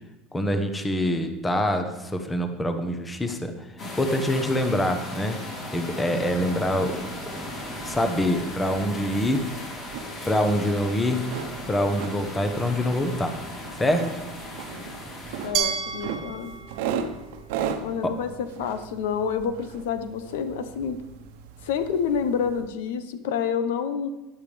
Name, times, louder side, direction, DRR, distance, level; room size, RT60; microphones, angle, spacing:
voice 1, 0.3-3.7 4.0-5.4 5.7-7.0 7.3-7.4 7.8-9.4 10.3-11.2 11.7-13.3 13.8-14.1 18.0-18.1, left 1 dB, 10° left, 7 dB, 1.0 m, -25 dB
sound 1, 3.8-15.5, left 1 dB, 35° left, 4.2 m, -37 dB
sound 2, 6.2-22.7, right 7 dB, 80° right, 1.0 m, -38 dB
voice 2, 15.4-16.6 17.8-18.3 18.6-21.0 21.6-24.1, left 7 dB, 90° left, 10 dB, 0.9 m, -28 dB
Glass, 15.5-18.5, right 8 dB, 45° right, 1.0 m, -32 dB
12.5 x 10.5 x 3.4 m, 1.1 s
supercardioid pair, 150°, 0 cm